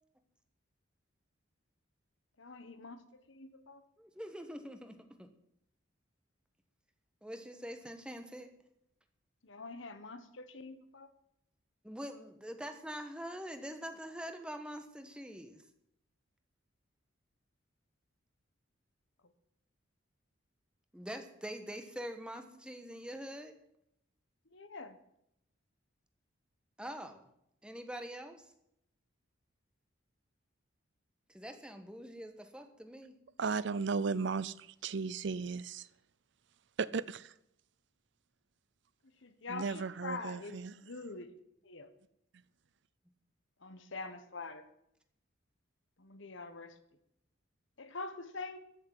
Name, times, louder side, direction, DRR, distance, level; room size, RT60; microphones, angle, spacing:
voice 1, 2.4-3.8 9.4-11.1 24.5-25.0 39.2-41.3 41.6-41.9 43.6-44.7 46.0-46.8 47.8-48.6, left 3 dB, 65° left, 10 dB, 1.3 m, -45 dB
voice 2, 4.0-5.3 7.2-8.5 11.8-15.6 20.9-23.5 26.8-27.3 27.6-28.5 31.3-33.1, equal, 5° right, 7 dB, 1.2 m, -44 dB
voice 3, 33.4-35.9 36.8-37.3 39.5-40.7, right 5 dB, 60° right, 18 dB, 0.5 m, -35 dB
14.0 x 6.7 x 9.4 m, 0.77 s
head